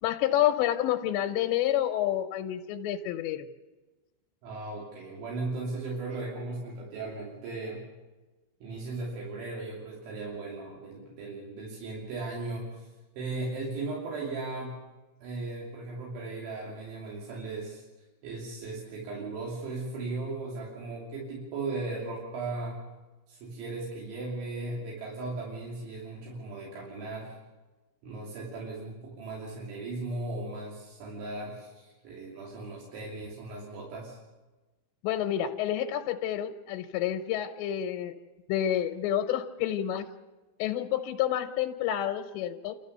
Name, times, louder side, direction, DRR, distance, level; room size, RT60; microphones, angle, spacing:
voice 1, 0.0-3.5 35.0-38.1 38.5-40.1 40.6-42.7, left 11 dB, 80° left, 4 dB, 3.0 m, -29 dB
voice 2, 4.4-7.8 8.6-12.9 13.2-14.8 15.2-17.8 18.2-22.8 23.3-27.3 28.0-34.2, right 3 dB, 85° right, -4 dB, 5.5 m, -37 dB
29.0 x 14.0 x 6.8 m, 1.2 s
omnidirectional pair, 5.2 m